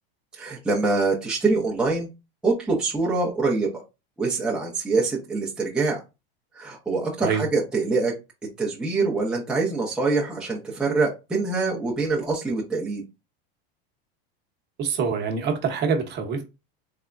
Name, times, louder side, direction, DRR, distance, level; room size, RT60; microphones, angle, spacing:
voice 1, 0.4-2.1 2.4-3.7 4.2-6.0 6.6-8.1 8.6-13.0, right 3 dB, 5° right, 0.8 m, -24 dB
voice 2, 14.8-16.4, right 6 dB, 35° right, 1.1 m, -25 dB
3.5 x 3.4 x 2.5 m
supercardioid pair, 140°, 30 cm